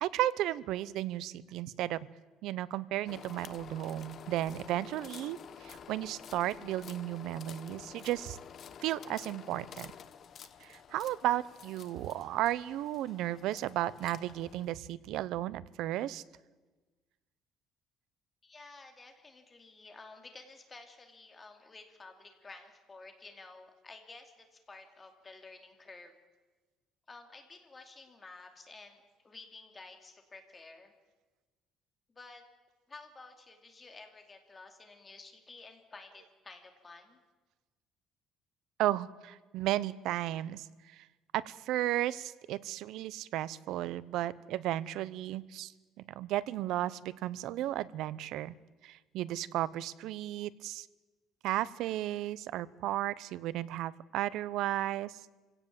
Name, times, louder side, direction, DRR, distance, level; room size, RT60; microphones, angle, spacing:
voice 1, 0.0-2.1 2.4-8.4 8.8-9.9 10.6-16.2 38.8-41.1 41.3-45.7 46.1-48.6 48.8-50.9 51.4-55.2, right 14 dB, 70° right, 18 dB, 0.7 m, -34 dB
sound 1, 3.1-14.7, left 8 dB, 40° left, 0.9 m, -50 dB
voice 2, 18.4-26.1 27.1-30.9 32.1-32.4 32.9-37.2, left 3 dB, 20° left, 5 dB, 2.6 m, -52 dB
26.0 x 17.0 x 7.5 m, 1.3 s
cardioid pair, 170°, 0 cm